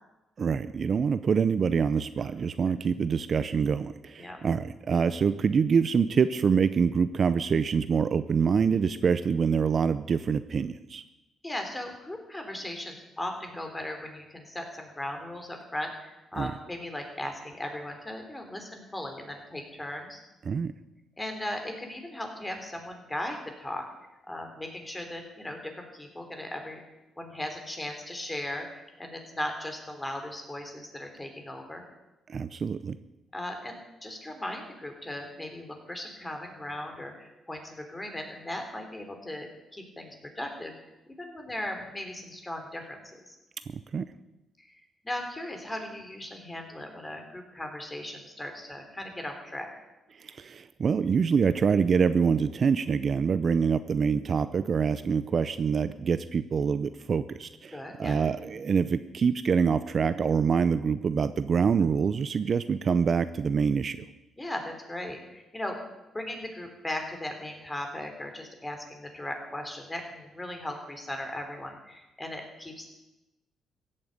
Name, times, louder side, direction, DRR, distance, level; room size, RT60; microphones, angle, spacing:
voice 1, 0.4-11.0 16.3-16.5 20.4-20.7 32.3-33.0 43.9-44.1 50.1-64.1, right 6 dB, 45° right, 13 dB, 0.6 m, -25 dB
voice 2, 11.4-20.2 21.2-23.9 24.3-26.8 27.2-31.8 33.3-40.7 41.2-43.0 43.3-43.4 44.6-44.8 45.0-49.7 57.7-58.2 64.4-65.8 66.1-72.9, left 1 dB, 15° left, 4 dB, 3.5 m, -37 dB
15.5 x 8.8 x 8.0 m, 1.0 s
cardioid pair, 90°, 0 cm